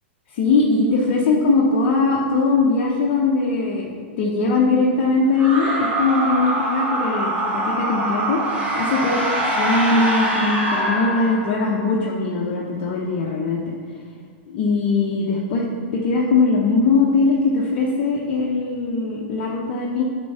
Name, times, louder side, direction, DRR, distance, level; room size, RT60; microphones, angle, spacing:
voice 1, 0.3-8.4 8.7-9.3 9.5-13.6 14.5-15.7 15.9-20.0, left 3 dB, 50° left, -3 dB, 1.0 m, -20 dB
sound 1, 5.3-11.8, right 1 dB, 20° right, 1.8 m, -23 dB
8.2 x 4.6 x 5.6 m, 2.2 s
hypercardioid pair, 125°, 6 cm